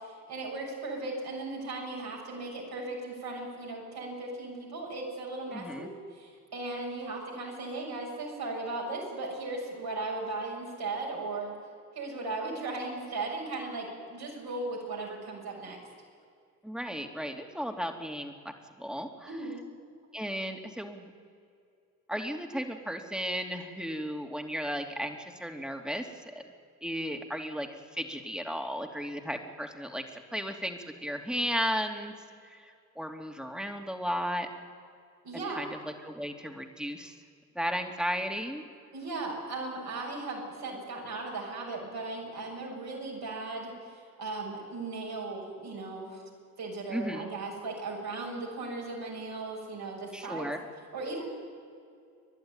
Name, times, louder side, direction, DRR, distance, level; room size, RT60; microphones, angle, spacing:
voice 1, 0.0-11.5 11.9-15.8 19.3-19.6 35.2-35.6 38.9-46.2 46.6-50.5 50.9-51.3, right 2 dB, 65° right, -2 dB, 6.7 m, -37 dB
voice 2, 5.5-5.9 16.6-18.3 18.8-19.3 20.1-21.1 22.1-26.4 26.8-32.1 32.5-34.5 35.6-37.1 37.5-38.6 46.9-47.3 50.1-50.6, equal, ahead, 4 dB, 3.0 m, -35 dB
29.0 x 11.5 x 9.2 m, 2.4 s
hypercardioid pair, 45°, 40 cm